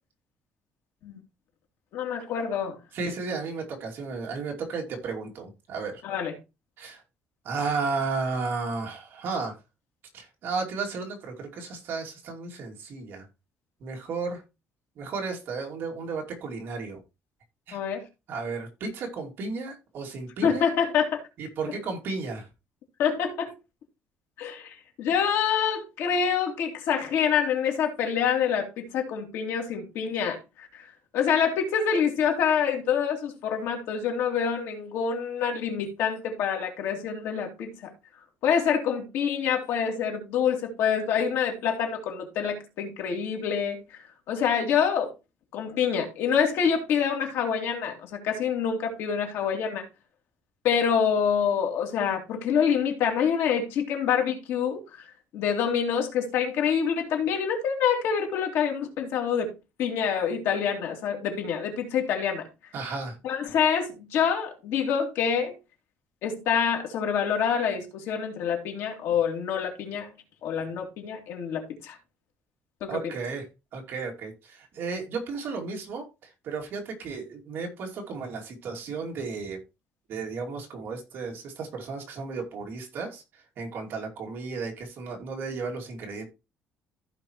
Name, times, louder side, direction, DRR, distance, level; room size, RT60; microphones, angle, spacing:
voice 1, 1.9-2.8 6.0-6.3 17.7-18.0 20.4-21.2 23.0-23.5 24.4-30.8 31.1-37.9 38.4-43.8 44.3-45.1 45.5-49.9 50.6-54.8 55.3-59.5 59.8-62.5 63.2-65.5 66.2-70.1 70.4-72.0 72.8-73.1, left 7 dB, 70° left, 2.6 m, -26 dB
voice 2, 2.9-6.0 6.8-7.0 7.4-9.6 10.1-13.3 13.8-14.4 15.0-17.0 17.7-17.8 18.3-20.6 21.4-22.5 62.7-63.2 72.9-73.4 73.7-76.1 76.4-79.6 80.1-83.2 83.6-86.3, right 4 dB, 50° right, 2.6 m, -33 dB
15.0 x 5.0 x 3.1 m
cardioid pair, 180°, 5 cm